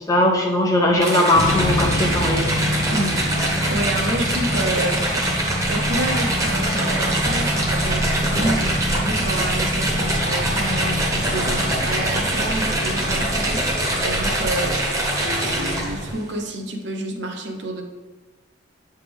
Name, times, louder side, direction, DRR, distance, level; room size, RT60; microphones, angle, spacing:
voice 1, 0.1-2.4 15.4-15.7, left 1 dB, 20° left, 1 dB, 0.5 m, -19 dB
sound 1, 1.0-16.1, right 1 dB, 15° right, 0.9 m, -24 dB
sound 2, 1.3-16.1, equal, 65° left, 1.2 m, -26 dB
voice 2, 2.9-17.8, right 1 dB, 70° right, 3 dB, 0.8 m, -29 dB
8.0 x 3.3 x 3.5 m, 1.3 s
head